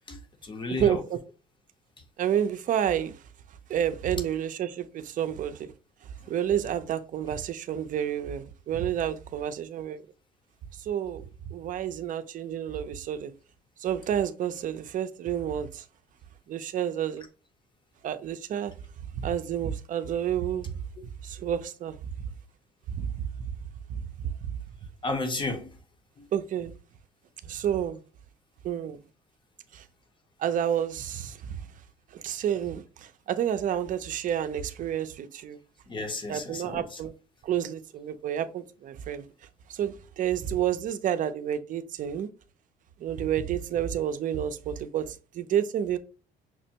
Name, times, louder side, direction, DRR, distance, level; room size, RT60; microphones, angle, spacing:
voice 1, 0.1-1.0 6.2-6.3 25.0-25.8 26.2-26.3 35.9-37.0, left 2 dB, 30° left, 0.8 m, -33 dB
voice 2, 0.7-1.2 2.2-3.1 3.7-5.7 6.3-10.0 10.8-11.2 11.5-13.3 13.8-15.8 16.5-17.2 18.0-18.7 19.1-20.7 21.2-22.0 22.9-23.4 23.9-24.3 26.3-26.7 27.4-28.0 28.6-29.0 29.7-29.8 30.4-31.6 32.1-35.6 36.3-37.1 37.4-39.2 39.7-42.3 43.0-46.0, right 9 dB, 50° right, 0.5 m, -30 dB
5.9 x 2.1 x 2.7 m
cardioid pair, 110°, 17 cm